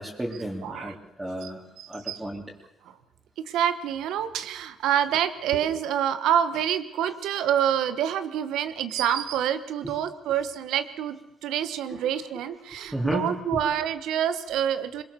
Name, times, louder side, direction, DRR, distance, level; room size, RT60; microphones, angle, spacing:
voice 1, 0.0-1.6 1.9-2.4 9.8-9.9 11.9-12.0 12.9-13.3, right 1 dB, 15° right, -4 dB, 3.3 m, -32 dB
voice 2, 0.6-0.9 1.4-1.5 1.8-2.2 2.9-3.0 3.5-15.0, right 9 dB, 85° right, 12 dB, 1.2 m, -27 dB
22.5 x 21.5 x 6.9 m, 0.88 s
cardioid pair, 90°, 0 cm